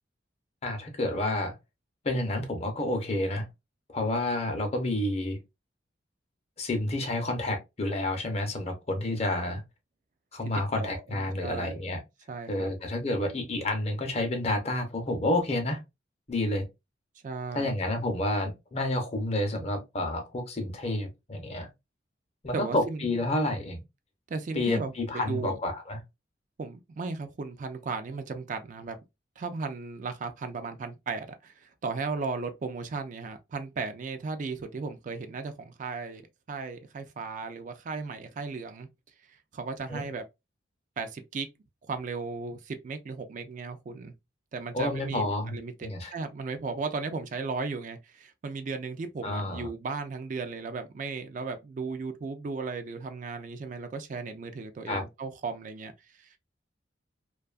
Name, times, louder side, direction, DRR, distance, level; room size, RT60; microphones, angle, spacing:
voice 1, 0.6-1.6 2.0-3.5 3.9-5.4 6.6-9.6 10.3-12.0 12.5-15.8 16.3-16.6 17.5-21.7 22.4-23.8 24.5-26.0 39.9-40.0 44.7-46.1 49.2-49.7 54.9-55.0, left 1 dB, 35° left, 0.6 m, -29 dB
voice 2, 10.8-11.8 12.3-12.7 17.2-17.7 22.5-23.0 24.3-25.6 26.6-29.0 29.4-36.2 36.5-38.9 39.5-40.2 41.0-41.5 41.9-44.1 44.5-55.9 56.2-56.4, right 4 dB, 45° right, 0.3 m, -36 dB
2.6 x 2.3 x 2.3 m
head